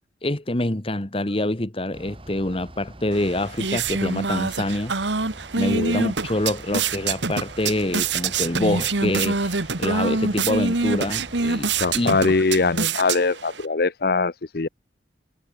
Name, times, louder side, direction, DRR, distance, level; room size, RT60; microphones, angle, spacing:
voice 1, 0.2-5.0 5.6-12.1, left 1 dB, 30° left, 1.5 m, -26 dB
Bus / Idling, 1.9-11.9, right 1 dB, 30° right, 4.1 m, -44 dB
if your mother only knew beatbox, 3.1-13.6, right 4 dB, 85° right, 1.9 m, -26 dB
voice 2, 11.8-14.7, left 3 dB, 55° left, 0.7 m, -22 dB
head